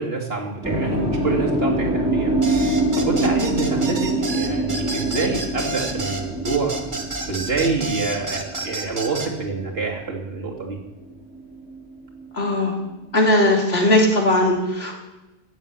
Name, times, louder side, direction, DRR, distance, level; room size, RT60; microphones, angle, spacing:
voice 1, 0.0-2.6 3.0-10.8, right 4 dB, 75° right, -1 dB, 2.8 m, -27 dB
sound 1, 0.6-10.7 11.0-12.7, right 1 dB, 5° right, 2.7 m, -25 dB
sound 2, 2.4-9.3, right 3 dB, 50° right, 1.6 m, -31 dB
voice 2, 12.3-12.8 13.1-14.9, left 1 dB, 85° left, -1 dB, 3.1 m, -18 dB
15.5 x 7.4 x 8.6 m, 1.0 s
omnidirectional pair, 1.0 m